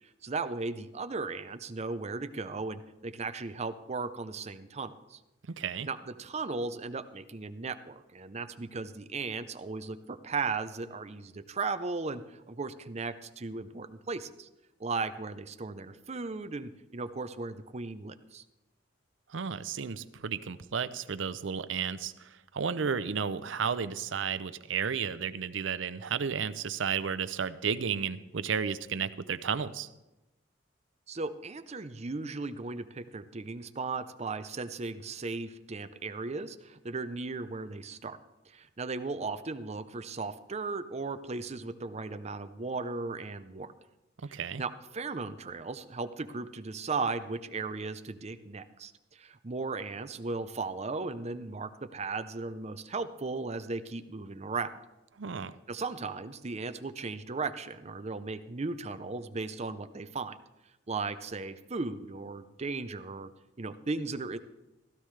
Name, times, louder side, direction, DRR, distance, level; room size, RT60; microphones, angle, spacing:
voice 1, 0.0-5.2 5.8-14.5 14.8-18.4 31.1-38.2 38.5-43.7 44.3-54.8 55.7-60.3 60.9-63.3 63.6-64.4, right 3 dB, 35° right, 11 dB, 0.6 m, -36 dB
voice 2, 5.5-5.9 19.3-29.9 44.2-44.6 55.2-55.6, right 6 dB, 75° right, 14 dB, 0.6 m, -33 dB
16.0 x 13.5 x 3.3 m, 0.98 s
head